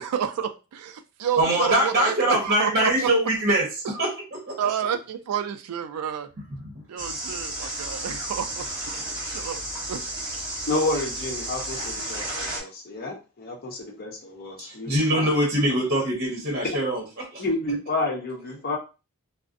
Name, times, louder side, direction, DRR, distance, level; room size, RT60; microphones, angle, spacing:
voice 1, 0.0-3.1 3.8-3.9 4.6-6.3 6.9-9.6 9.9-10.0, right 8 dB, 85° right, 9 dB, 0.4 m, -30 dB
voice 2, 1.4-3.7 3.9-4.6 7.6-7.7 14.7-17.0 17.3-17.4, right 1 dB, 45° right, -2 dB, 0.9 m, -23 dB
sound 1, 7.0-12.6, right 1 dB, 20° right, 1.1 m, -32 dB
voice 3, 10.7-15.3 17.4-18.8, left 2 dB, 45° left, 0 dB, 0.7 m, -30 dB
2.5 x 2.0 x 2.5 m, 0.31 s
head